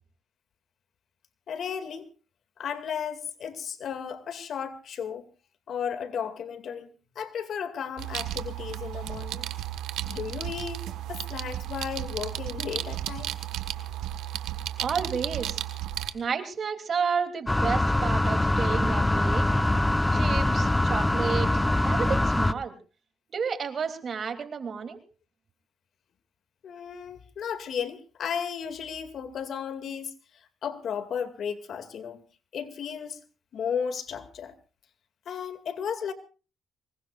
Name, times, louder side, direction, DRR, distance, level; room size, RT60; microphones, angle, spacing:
voice 1, 1.5-2.1 2.6-5.3 5.7-9.5 10.1-13.3 26.6-32.2 32.5-33.2 33.5-34.5 35.3-36.1, left 7 dB, 65° left, 2.3 m, -34 dB
sound 1, 8.0-16.1, right 12 dB, 90° right, 1.4 m, -34 dB
voice 2, 14.8-15.6 16.1-19.5 20.1-22.7 23.3-25.0, right 6 dB, 50° right, 2.9 m, -31 dB
sound 2, 17.5-22.5, left 1 dB, 10° left, 0.8 m, -23 dB
24.5 x 20.5 x 2.5 m
cardioid pair, 90°, 0 cm